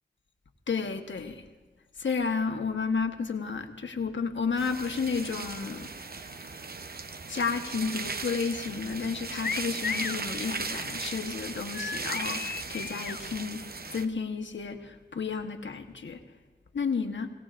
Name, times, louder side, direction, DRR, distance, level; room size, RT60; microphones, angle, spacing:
voice 1, 0.7-1.4 2.0-5.9 7.3-13.6 13.9-16.2 16.7-17.3, left 5 dB, 80° left, 5 dB, 1.2 m, -32 dB
sound 1, 4.6-14.0, right 4 dB, 55° right, 0.8 m, -37 dB
sound 2, 9.4-10.2 11.7-13.2, left 6 dB, 60° left, 0.5 m, -34 dB
25.0 x 17.0 x 2.5 m, 1.3 s
cardioid pair, 40°, 19 cm